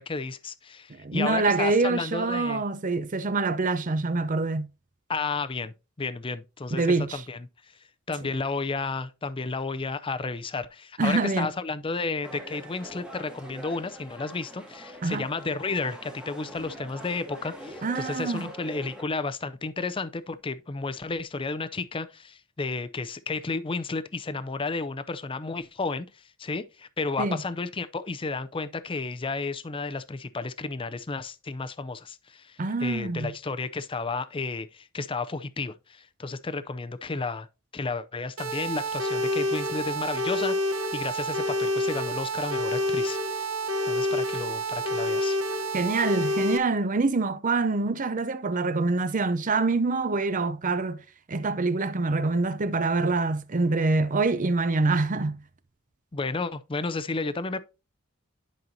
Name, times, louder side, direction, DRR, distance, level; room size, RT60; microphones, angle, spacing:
voice 1, 0.0-2.6 5.1-6.8 7.1-7.4 8.1-37.5 37.7-43.5 43.8-45.4 56.1-57.6, left 3 dB, 25° left, 0.5 m, -32 dB
voice 2, 1.0-4.7 6.7-7.2 11.0-11.5 15.0-15.3 17.8-18.5 27.2-27.4 32.6-33.3 45.7-51.0 51.3-55.4, right 3 dB, 40° right, 0.6 m, -25 dB
sound 1, 12.2-19.0, right 1 dB, 5° right, 1.3 m, -43 dB
sound 2, 38.4-46.6, equal, 70° right, 1.1 m, -28 dB
10.5 x 5.5 x 2.7 m
head